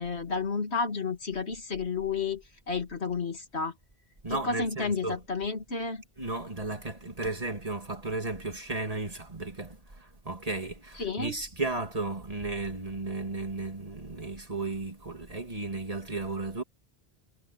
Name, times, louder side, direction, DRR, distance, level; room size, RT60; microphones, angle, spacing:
voice 1, 0.0-3.7 4.3-6.0 11.0-11.4, left 4 dB, 90° left, 2.8 m, -31 dB
voice 2, 4.2-5.2 6.2-16.6, right 3 dB, 35° right, 2.8 m, -34 dB
omnidirectional pair, 1.1 m